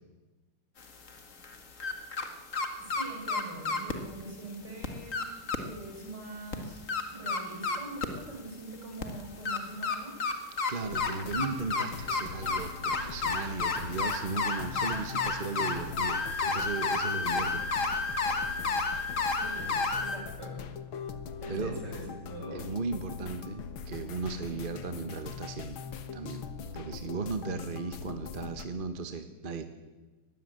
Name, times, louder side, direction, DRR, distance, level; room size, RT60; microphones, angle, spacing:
sound 1, 0.8-2.3 2.5-3.9 4.5-4.6 4.8-5.6 6.0-6.1 6.5-8.2 8.9-20.2, left 4 dB, 40° left, 1.9 m, -31 dB
voice 1, 2.8-5.3 5.6-6.8 7.1-10.2 19.3-20.6 21.4-22.7 24.5-24.6, right 2 dB, 50° right, 1 dB, 7.2 m, -43 dB
voice 2, 10.7-16.2 16.4-17.9 21.5-21.8 22.5-25.8 26.1-26.4 26.7-29.6, right 4 dB, 30° right, 7 dB, 1.2 m, -36 dB
sound 2, 10.8-28.7, left 6 dB, 70° left, 2.0 m, -42 dB
20.5 x 15.5 x 9.5 m, 1.2 s
omnidirectional pair, 2.3 m